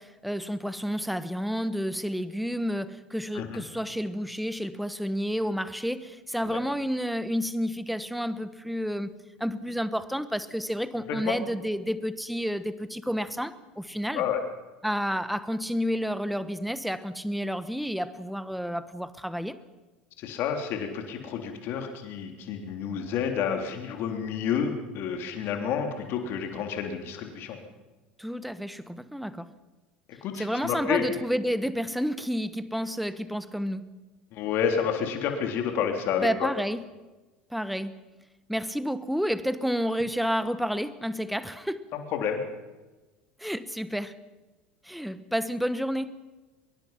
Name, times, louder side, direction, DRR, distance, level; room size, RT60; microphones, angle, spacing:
voice 1, 0.0-9.1 9.4-14.2 14.8-19.6 28.2-29.5 30.4-34.1 36.2-36.8 37.5-38.1 38.5-41.8 43.4-44.2 44.8-46.2, equal, ahead, 1.2 m, -30 dB
voice 2, 20.2-27.6 30.2-31.0 34.3-36.5 41.9-42.4, left 7 dB, 50° left, 3.5 m, -30 dB
24.0 x 22.5 x 5.8 m
figure-of-eight pair, 75°, 5 cm